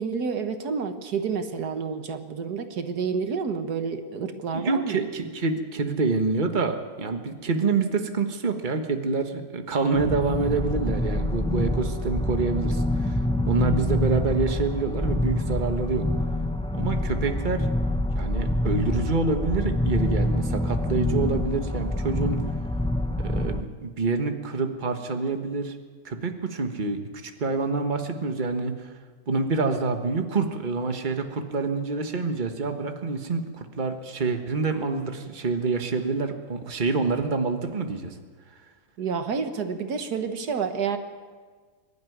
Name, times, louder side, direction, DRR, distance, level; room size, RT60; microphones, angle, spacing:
voice 1, 0.0-5.0 39.0-41.0, right 5 dB, 90° right, 7 dB, 1.9 m, -29 dB
voice 2, 4.5-13.2 13.4-16.1 16.7-17.7 18.1-22.5 23.2-25.8 26.0-28.9 29.3-38.1, right 4 dB, 30° right, 6 dB, 1.5 m, -27 dB
sound 1, 9.9-23.6, left 1 dB, 5° left, 0.4 m, -26 dB
23.5 x 12.0 x 9.3 m, 1.5 s
omnidirectional pair, 1.6 m